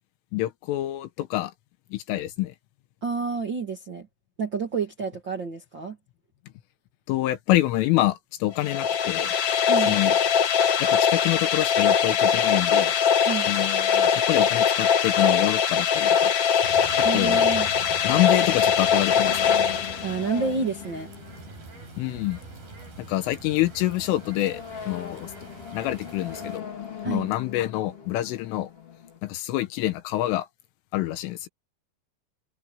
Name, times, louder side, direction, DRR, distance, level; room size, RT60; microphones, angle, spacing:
voice 1, 0.3-1.5 1.9-2.6 7.1-9.3 9.9-10.2 10.8-13.0 13.5-16.3 17.1-17.5 18.0-19.5 22.0-22.4 23.1-25.3 25.7-26.7 27.1-28.7 29.2-30.5 30.9-31.5, left 15 dB, 85° left, 3.7 m, -26 dB
voice 2, 3.0-4.1 4.4-6.0 9.6-10.0 13.2-13.5 17.0-17.7 20.0-21.1 27.0-27.3, right 5 dB, 70° right, 1.0 m, -29 dB
sound 1, 8.6-20.5, left 7 dB, 55° left, 2.0 m, -22 dB
sound 2, 15.9-16.0 16.3-29.2, left 8 dB, 35° left, 3.5 m, -42 dB
sound 3, 16.6-26.6, right 3 dB, 45° right, 9.8 m, -44 dB
omnidirectional pair, 5.6 m